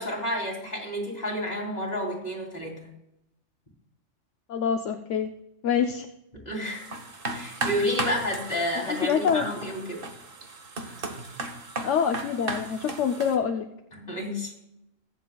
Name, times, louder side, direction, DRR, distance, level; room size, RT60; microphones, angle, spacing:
voice 1, 0.0-2.8 6.3-6.9 7.3-10.0 10.8-11.0 13.9-14.5, equal, 30° left, -2 dB, 3.2 m, -30 dB
voice 2, 4.5-5.3 5.6-6.1 8.9-9.5 11.8-13.7, left 7 dB, 70° left, 5 dB, 1.0 m, -26 dB
sound 1, 6.6-13.4, right 2 dB, 45° right, 1.3 m, -35 dB
22.0 x 7.5 x 2.3 m, 0.84 s
omnidirectional pair, 1.3 m